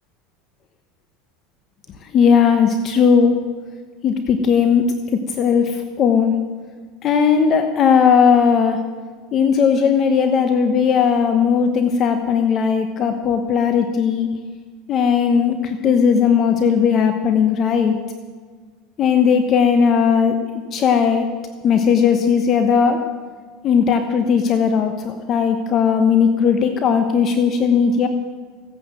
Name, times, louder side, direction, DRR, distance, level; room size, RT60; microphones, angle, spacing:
voice 1, 2.1-3.3 4.0-4.8 5.4-6.3 7.0-8.8 9.3-14.3 14.9-18.0 19.0-20.4 20.7-21.3 21.6-23.0 23.6-28.1, left 6 dB, 35° left, 7 dB, 1.0 m, -17 dB
16.5 x 9.7 x 7.6 m, 1.5 s
supercardioid pair, 135°, 0 cm